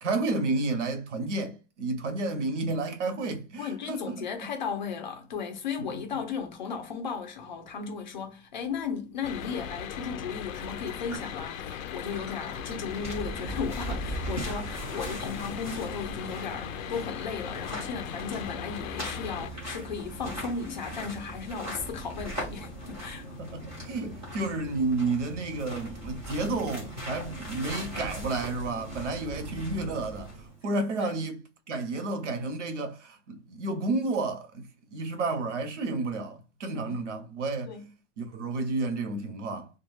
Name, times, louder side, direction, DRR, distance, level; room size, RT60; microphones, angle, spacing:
voice 1, 0.0-4.3 5.8-6.0 23.4-31.4 31.7-37.7 38.2-39.7, right 3 dB, 65° right, 0.8 m, -31 dB
voice 2, 3.6-23.2 31.0-31.1 36.9-37.0 37.7-37.9, left 6 dB, 35° left, 0.5 m, -35 dB
sound 1, 4.4-4.5 5.4-5.5 9.6-9.7 9.9-10.0 10.3-13.0, left 3 dB, 10° left, 0.8 m, -49 dB
sound 2, 9.2-19.5, left 8 dB, 90° left, 0.6 m, -38 dB
sound 3, 12.3-30.6, right 1 dB, 10° right, 0.5 m, -39 dB
2.3 x 2.3 x 3.1 m
hypercardioid pair, 180°, 39 cm